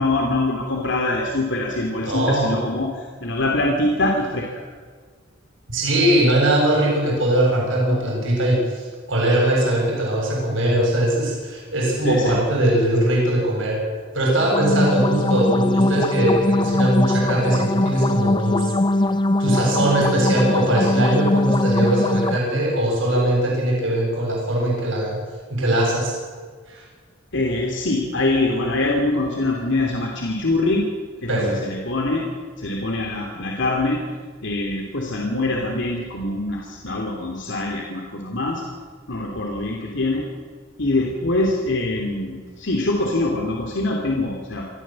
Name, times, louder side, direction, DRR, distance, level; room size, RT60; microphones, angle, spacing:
voice 1, 0.0-4.6 12.0-12.4 27.3-30.9 31.2-32.2 32.6-34.0 34.4-38.6 39.1-40.2 40.8-44.6, left 2 dB, 65° left, 0 dB, 2.8 m, -24 dB
voice 2, 2.0-2.7 5.7-13.8 14.1-18.7 19.4-25.2 25.5-26.1 26.7-26.8 31.3-31.6, right 1 dB, 70° right, -2 dB, 7.8 m, -20 dB
sound 1, 14.4-22.4, left 2 dB, 25° left, 0.6 m, -21 dB
25.0 x 14.5 x 7.6 m, 1.5 s
head